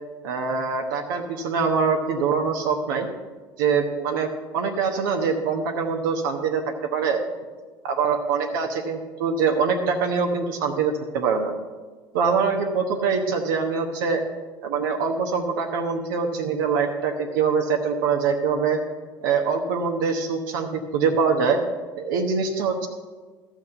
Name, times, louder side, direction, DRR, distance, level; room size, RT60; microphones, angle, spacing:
voice 1, 0.2-3.1 3.6-4.3 4.5-6.6 6.9-7.2 7.8-11.5 12.1-14.2 14.6-18.8 19.2-21.6 22.0-22.9, right 5 dB, 70° right, 2 dB, 1.1 m, -24 dB
13.0 x 6.4 x 7.9 m, 1.4 s
figure-of-eight pair, 70°, 12 cm